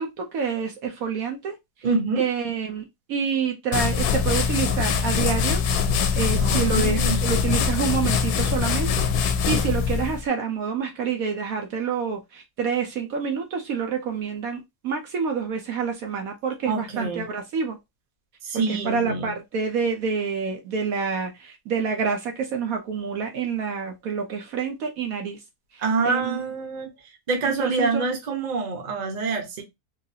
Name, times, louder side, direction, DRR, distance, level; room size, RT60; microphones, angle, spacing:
voice 1, 0.0-1.6 2.2-5.6 6.1-17.8 18.5-25.4 25.7-26.4 27.4-28.1, right 6 dB, 70° right, 1.0 m, -28 dB
voice 2, 1.8-2.2 6.4-7.2 16.7-17.2 18.4-19.3 25.8-26.9 27.3-29.6, right 4 dB, 35° right, 0.8 m, -26 dB
sound 1, 3.7-10.2, left 6 dB, 80° left, 1.1 m, -23 dB
3.9 x 2.5 x 2.7 m
omnidirectional pair, 1.7 m